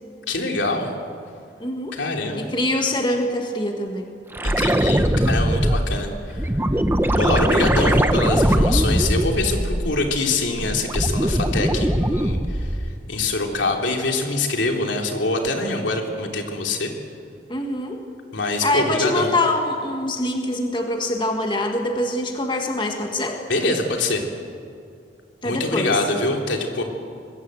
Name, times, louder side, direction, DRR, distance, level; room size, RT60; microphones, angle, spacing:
voice 1, 0.3-0.9 1.9-2.5 4.4-6.5 7.2-12.7 13.1-16.9 18.3-19.3 23.5-24.3 25.4-26.8, left 2 dB, 85° left, 2 dB, 3.3 m, -24 dB
voice 2, 1.6-2.0 2.3-4.1 17.5-18.0 18.6-23.4 25.4-26.0, left 1 dB, 25° left, 3 dB, 1.8 m, -24 dB
sound 1, 4.3-10.1 10.5-13.0 15.5-15.6, right 1 dB, 10° right, 0.8 m, -21 dB
26.0 x 21.5 x 7.9 m, 2.4 s
head